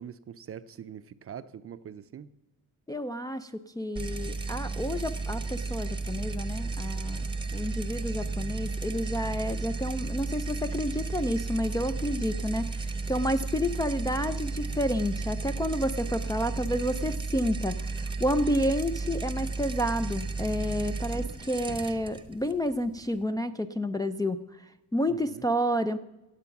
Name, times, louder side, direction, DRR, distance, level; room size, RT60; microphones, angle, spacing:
voice 1, 0.0-2.3 25.1-25.5, right 8 dB, 40° right, 0.5 m, -43 dB
voice 2, 2.9-3.5 3.8-24.4 24.9-26.0, equal, 10° left, 0.3 m, -30 dB
sound 1, 4.0-23.2, right 3 dB, 15° right, 0.9 m, -33 dB
16.5 x 7.9 x 5.8 m
cardioid pair, 140°, 37 cm